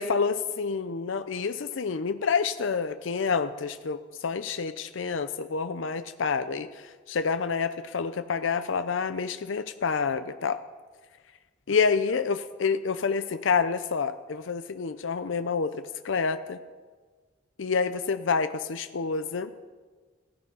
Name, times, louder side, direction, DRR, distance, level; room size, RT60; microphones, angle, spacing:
voice 1, 0.0-6.7 7.1-10.6 11.7-16.6 17.6-19.5, left 5 dB, 75° left, 11 dB, 0.6 m, -28 dB
15.0 x 14.0 x 5.5 m, 1.4 s
head